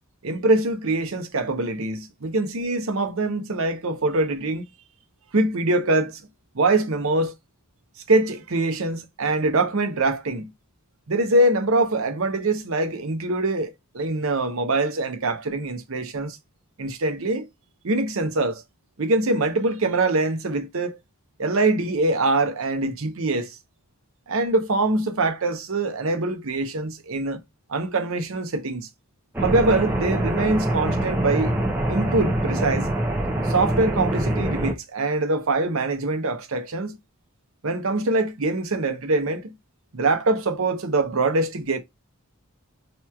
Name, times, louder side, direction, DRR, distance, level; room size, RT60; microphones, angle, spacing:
voice 1, 0.2-4.6 5.3-6.2 6.5-7.3 8.1-10.5 11.1-16.4 16.8-17.5 17.8-18.6 19.0-21.0 21.4-23.6 24.3-27.4 27.7-28.9 29.4-31.6 31.9-32.9 33.4-37.0 37.6-39.5 39.9-41.8, right 2 dB, 70° right, 0.7 m, -23 dB
sound 1, 29.3-34.7, right 1 dB, 10° right, 0.7 m, -24 dB
4.3 x 3.0 x 2.3 m
head